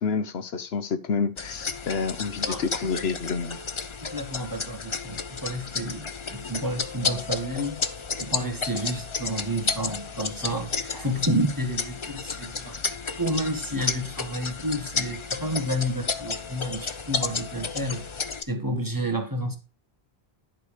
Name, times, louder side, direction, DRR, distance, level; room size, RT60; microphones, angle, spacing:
voice 1, 0.0-3.6, left 5 dB, 75° left, 1.0 m, -28 dB
sound 1, 1.4-18.4, left 5 dB, 35° left, 0.6 m, -32 dB
voice 2, 4.1-7.8 8.2-12.8 13.2-18.1 18.4-19.6, equal, 20° right, 1.6 m, -30 dB
11.0 x 5.1 x 4.9 m
omnidirectional pair, 1.1 m